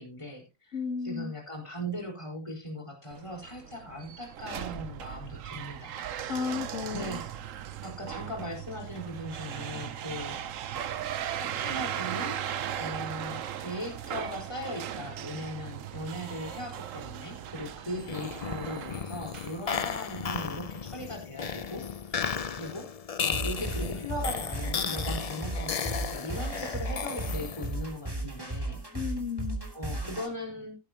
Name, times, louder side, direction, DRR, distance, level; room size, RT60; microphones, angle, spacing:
voice 1, 0.0-0.8 1.0-6.4 6.9-7.2 7.8-10.4 11.4-12.4 12.8-22.1 22.6-22.9 23.2-28.8 29.7-30.8, equal, 20° left, 1 dB, 4.4 m, -39 dB
voice 2, 0.7-1.3 6.3-7.2 28.9-29.6, left 6 dB, 65° left, 8 dB, 1.7 m, -33 dB
sound 1, 3.1-20.6, right 10 dB, 70° right, 1.1 m, -38 dB
sound 2, 18.0-27.9, left 6 dB, 45° left, 0.4 m, -35 dB
sound 3, 23.3-30.3, right 2 dB, 15° right, 2.6 m, -35 dB
17.0 x 8.8 x 2.9 m, 0.27 s
omnidirectional pair, 1.4 m